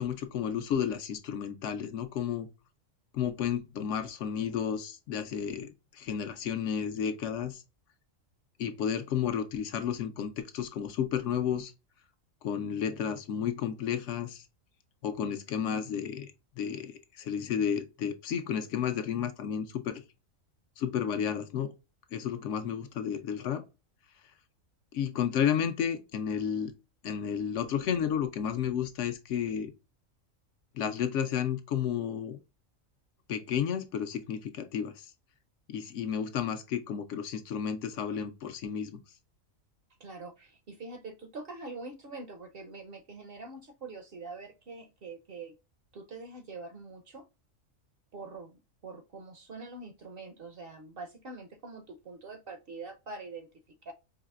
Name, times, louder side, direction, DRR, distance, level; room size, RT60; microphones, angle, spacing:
voice 1, 0.0-2.5 3.1-7.6 8.6-11.7 12.4-14.4 15.0-20.0 20.8-21.7 22.1-23.6 24.9-26.7 27.0-29.7 30.7-32.4 33.3-35.1 35.7-39.0, left 8 dB, 70° left, 0.8 m, -32 dB
voice 2, 40.0-45.5 45.9-47.3 48.1-53.5 53.8-53.9, right 3 dB, 55° right, 0.7 m, -44 dB
4.8 x 2.8 x 2.3 m
omnidirectional pair, 1.4 m